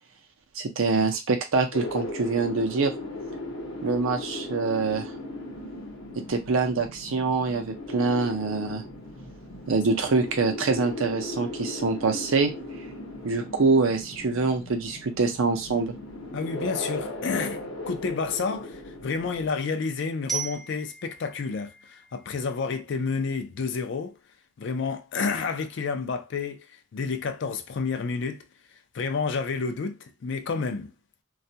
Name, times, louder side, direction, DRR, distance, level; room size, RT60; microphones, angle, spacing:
voice 1, 0.6-2.9 3.8-5.1 6.3-8.8 9.7-12.5 13.2-15.9, right 4 dB, 70° right, 0.5 m, -25 dB
sound 1, 1.7-19.5, left 2 dB, 70° left, 0.8 m, -37 dB
voice 2, 16.3-17.6 17.9-24.2 24.6-26.7 26.9-28.5 28.9-30.9, left 4 dB, 55° left, 0.3 m, -30 dB
Glockenspiel, 20.3-23.1, right 6 dB, ahead, 0.5 m, -38 dB
2.3 x 2.1 x 2.7 m
head